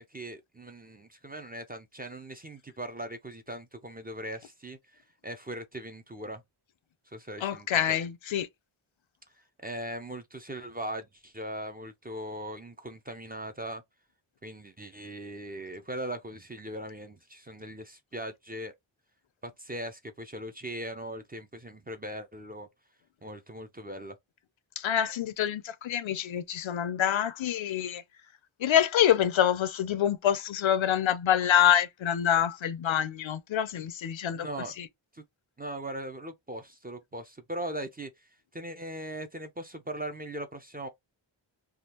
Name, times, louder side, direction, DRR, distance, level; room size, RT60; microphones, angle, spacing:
voice 1, 0.0-6.4 7.1-8.0 9.6-13.8 14.4-18.7 19.4-22.7 23.2-24.2 34.3-34.7 35.1-35.2 35.6-40.9, right 1 dB, 20° right, 0.4 m, -39 dB
voice 2, 7.4-8.5 24.8-28.0 28.6-34.5 34.8-34.9, left 10 dB, 75° left, 0.6 m, -26 dB
3.5 x 2.3 x 2.9 m
wide cardioid pair, 140°, 47 cm